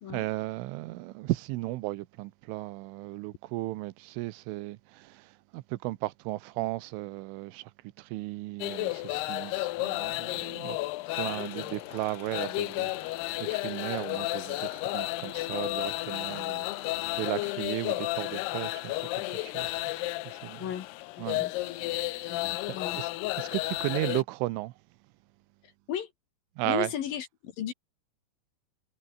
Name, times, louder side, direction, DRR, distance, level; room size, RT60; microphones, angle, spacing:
voice 1, 0.1-5.2 5.5-7.7 8.0-10.8 11.2-12.9 13.4-18.9 19.3-19.8 20.3-20.6 21.2-21.5 21.8-23.1 23.4-24.7 26.6-26.9, right 19 dB, 90° right, 3.4 m, -35 dB
sound 1, 8.6-24.2, left 19 dB, 85° left, 2.3 m, -33 dB
sound 2, 11.2-17.5, left 6 dB, 40° left, 1.7 m, -52 dB
voice 2, 21.2-21.5 22.3-23.0 25.9-26.1 26.6-27.7, left 10 dB, 60° left, 2.9 m, -35 dB
omnidirectional pair, 5.5 m